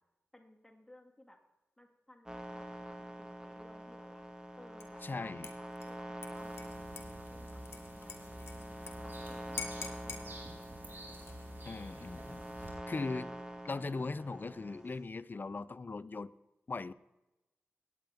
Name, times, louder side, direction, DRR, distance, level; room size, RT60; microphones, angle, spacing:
voice 1, 0.3-1.4 1.8-4.2 4.6-6.7 7.0-8.4 9.0-11.2, left 1 dB, 10° left, 1 dB, 2.1 m, -59 dB
sound 1, 2.2-15.0, equal, 15° right, 1.6 m, -46 dB
Dishes pots and pans / Liquid, 4.8-5.1 5.4-8.9 9.2-9.3 9.6-10.2 11.1-11.6, left 4 dB, 65° left, 1.7 m, -46 dB
voice 2, 5.0-5.5 11.6-12.4 12.9-13.3 13.6-16.3 16.7-16.9, left 3 dB, 45° left, 16 dB, 0.5 m, -39 dB
sound 2, 6.3-12.7, right 1 dB, 50° right, 4.3 m, -50 dB
17.0 x 9.0 x 3.5 m, 1.0 s
cardioid pair, 50°, 5 cm